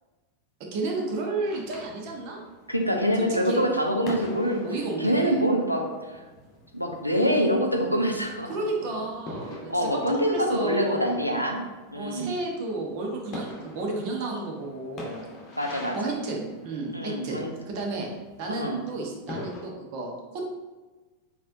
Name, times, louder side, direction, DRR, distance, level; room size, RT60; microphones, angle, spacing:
voice 1, 0.7-2.4 3.4-3.6 4.1-5.4 8.5-11.2 11.9-15.2 15.9-18.1 18.4-20.5, right 2 dB, 45° right, 0 dB, 0.9 m, -32 dB
sound 1, 1.4-19.6, left 1 dB, 30° left, 1.0 m, -45 dB
voice 2, 2.7-4.6 5.0-6.2 6.7-8.5 9.7-11.6 11.9-12.3 15.6-16.1 16.9-17.6 18.5-18.8, equal, 90° right, 1 dB, 0.6 m, -25 dB
4.3 x 4.1 x 2.6 m, 1.2 s
figure-of-eight pair, 90°, 0 cm